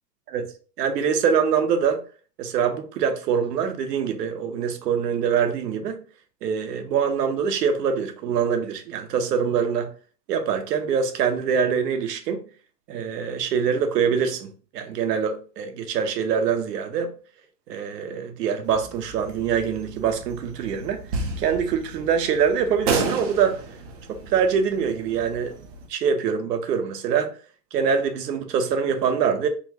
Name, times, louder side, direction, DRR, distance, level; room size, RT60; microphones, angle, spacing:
voice 1, 0.8-2.0 2.4-6.0 6.4-9.9 10.3-12.4 12.9-17.1 17.7-21.0 21.4-23.6 24.1-25.5 25.9-27.3 27.7-29.5, right 7 dB, 75° right, 1.0 m, -24 dB
sound 1, 18.6-25.9, right 4 dB, 25° right, 0.5 m, -33 dB
4.3 x 2.3 x 2.8 m
hypercardioid pair, 145°, 49 cm